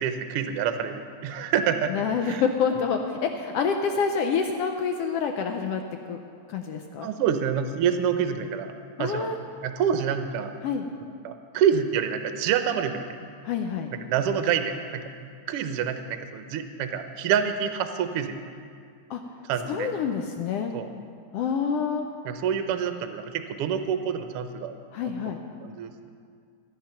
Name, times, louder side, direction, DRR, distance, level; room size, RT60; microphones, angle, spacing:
voice 1, 0.0-1.9 2.2-2.4 7.0-8.7 9.0-9.3 9.6-10.5 11.2-13.0 14.1-15.0 15.5-18.4 19.5-19.9 20.7-20.9 22.2-24.7 25.6-25.9, right 8 dB, 75° right, 8 dB, 1.4 m, -27 dB
voice 2, 1.9-6.2 6.5-7.1 9.0-9.4 10.6-10.9 13.4-13.9 19.1-19.2 19.7-20.7 21.3-22.1 24.9-25.4, left 6 dB, 80° left, 4 dB, 1.4 m, -27 dB
14.0 x 8.9 x 5.7 m, 2.2 s
omnidirectional pair, 3.3 m